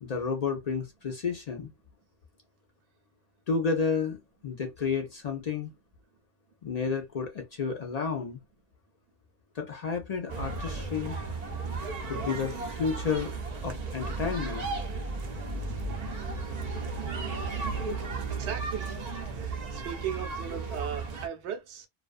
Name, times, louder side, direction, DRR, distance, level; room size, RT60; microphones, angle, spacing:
voice 1, 0.0-1.7 3.5-4.2 4.4-5.7 6.6-8.4 9.6-11.2 12.1-13.3 13.6-14.7, left 5 dB, 55° left, 0.4 m, -31 dB
sound 1, 10.3-21.3, right 3 dB, 55° right, 0.5 m, -34 dB
voice 2, 18.3-21.9, right 8 dB, 85° right, 0.9 m, -37 dB
2.3 x 2.3 x 2.4 m
omnidirectional pair, 1.1 m